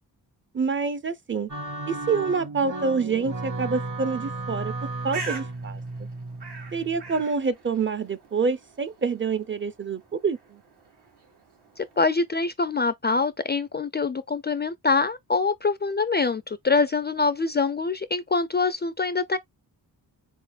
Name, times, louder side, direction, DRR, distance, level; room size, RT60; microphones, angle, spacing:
voice 1, 0.5-1.5 1.9-4.7 5.0-5.8 6.7-10.6, right 5 dB, 30° right, 0.5 m, -27 dB
sound 1, 1.5-7.2, right 2 dB, 50° right, 1.2 m, -34 dB
Bird, 4.7-12.3, right 4 dB, 85° right, 1.8 m, -43 dB
voice 2, 11.8-19.4, left 4 dB, 30° left, 0.3 m, -24 dB
4.0 x 3.8 x 2.3 m
wide cardioid pair, 105°, 39 cm